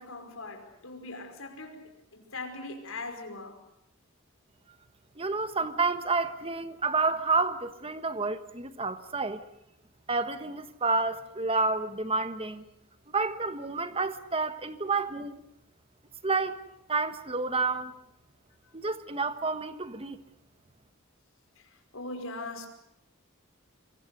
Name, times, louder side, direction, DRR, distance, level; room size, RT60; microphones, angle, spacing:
voice 1, 0.0-3.6 18.6-18.7 21.6-22.7, left 2 dB, 75° left, 5.3 m, -41 dB
voice 2, 5.2-9.4 10.1-12.6 13.1-15.4 16.2-16.6 16.9-17.9 18.7-20.2, right 3 dB, 25° right, 1.4 m, -29 dB
26.0 x 24.0 x 6.7 m
head